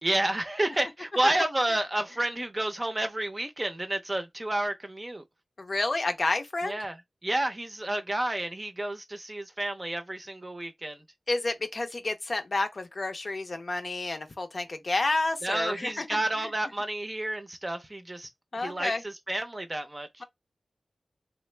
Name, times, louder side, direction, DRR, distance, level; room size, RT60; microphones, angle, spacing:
voice 1, 0.0-5.2 6.6-7.0 7.2-11.0 15.4-18.3 18.5-20.2, right 1 dB, 25° right, 0.6 m, -30 dB
voice 2, 5.6-6.8 11.3-16.0 16.4-16.5 18.5-19.0, left 2 dB, 50° left, 0.6 m, -30 dB
3.3 x 2.1 x 3.2 m
wide cardioid pair, 80°, 0 cm